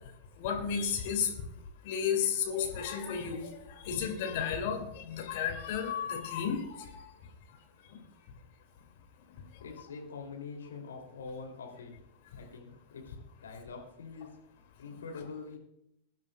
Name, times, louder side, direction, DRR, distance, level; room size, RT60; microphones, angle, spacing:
voice 1, 0.4-1.3 1.8-7.1 7.9-8.0, left 7 dB, 50° left, 4 dB, 2.1 m, -33 dB
voice 2, 9.6-12.0 12.3-14.3 14.8-15.6, left 4 dB, 65° left, 1 dB, 2.6 m, -44 dB
22.5 x 10.5 x 2.2 m, 0.81 s
figure-of-eight pair, 90°, 0 cm